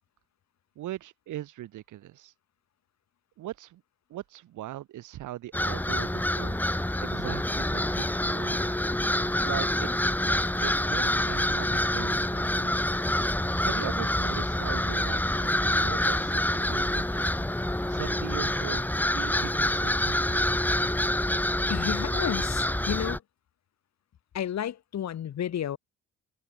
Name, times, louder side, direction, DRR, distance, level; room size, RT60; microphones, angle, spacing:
voice 1, 0.8-2.3 3.4-3.8 4.1-8.8 9.4-9.9 10.2-12.8 13.6-18.9 19.1-20.4, right 14 dB, 80° right, 2.1 m, -40 dB
sound 1, 5.5-23.2, left 1 dB, 5° left, 1.3 m, -27 dB
sound 2, 10.2-12.1 12.7-19.5, left 5 dB, 35° left, 7.1 m, -58 dB
voice 2, 21.7-23.2 24.3-25.8, left 10 dB, 60° left, 2.7 m, -31 dB
cardioid pair, 90°, 30 cm